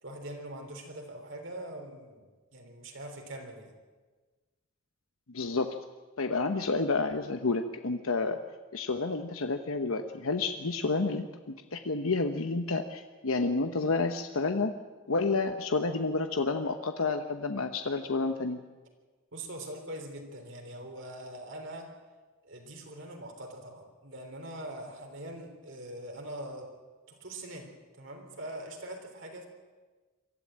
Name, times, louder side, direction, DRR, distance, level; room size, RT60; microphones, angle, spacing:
voice 1, 0.0-3.7 19.3-21.9 22.4-26.7 27.1-27.7 28.0-29.5, right 1 dB, 65° right, 2 dB, 3.4 m, -43 dB
voice 2, 5.3-5.7 6.2-8.4 8.7-11.3 11.7-14.7 15.1-18.6, left 3 dB, 85° left, 7 dB, 1.0 m, -30 dB
23.5 x 14.0 x 8.8 m, 1.3 s
head